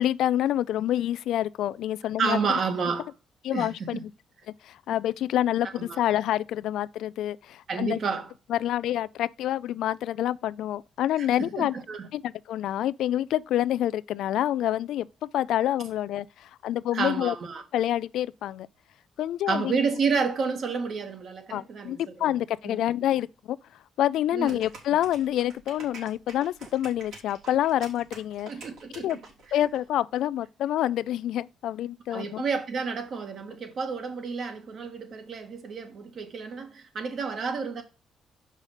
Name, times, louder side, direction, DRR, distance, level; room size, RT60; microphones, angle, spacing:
voice 1, 0.0-2.4 3.4-4.1 4.6-8.0 8.5-11.7 12.1-17.3 17.7-18.7 19.2-19.8 21.5-23.6 24.0-28.5 29.0-29.2 29.5-32.4, left 12 dB, 85° left, 0.3 m, -27 dB
voice 2, 2.2-3.1 3.5-4.0 5.8-6.0 7.7-8.3 11.2-12.1 16.9-17.6 19.5-22.3 22.6-22.8 24.3-24.6 28.5-29.2 32.1-37.8, right 5 dB, 55° right, 1.7 m, -30 dB
sound 1, 24.5-29.8, right 4 dB, 75° right, 3.2 m, -46 dB
6.4 x 5.4 x 4.9 m
cardioid pair, 105°, 0 cm